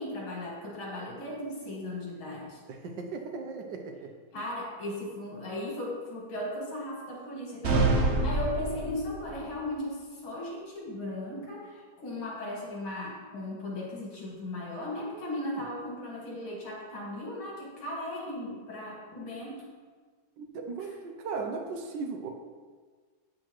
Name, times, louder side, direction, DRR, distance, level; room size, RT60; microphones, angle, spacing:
voice 1, 0.0-2.6 4.3-19.7, left 1 dB, 90° left, -3 dB, 2.6 m, -37 dB
voice 2, 2.7-4.1 15.0-15.3 20.4-22.3, right 4 dB, 70° right, 3 dB, 1.3 m, -37 dB
sound 1, 7.6-9.3, right 2 dB, 55° right, 0.7 m, -26 dB
8.3 x 6.7 x 3.1 m, 1.5 s
omnidirectional pair, 2.2 m